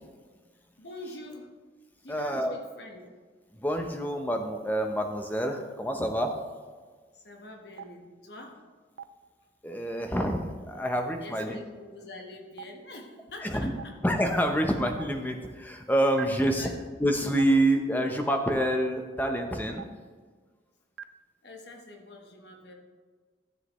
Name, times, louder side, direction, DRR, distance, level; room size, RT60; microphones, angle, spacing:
voice 1, 0.8-1.5 2.0-3.0 7.1-8.6 11.2-13.9 16.6-16.7 21.4-22.7, left 2 dB, 65° left, 2 dB, 1.4 m, -45 dB
voice 2, 2.1-2.5 3.5-6.3 9.6-11.6 13.4-13.7 14.0-16.7 17.0-19.9, right 1 dB, 10° left, 4 dB, 0.8 m, -27 dB
Stream, 7.8-7.9 9.0-9.1 10.2-10.3 11.4-11.5 12.6-12.7 13.8-13.9 15.0-15.1 16.2-16.3 17.4-17.5 18.6-18.7 19.8-19.9 21.0-21.1, right 8 dB, 85° right, 0.5 m, -38 dB
13.0 x 7.6 x 3.2 m, 1.5 s
head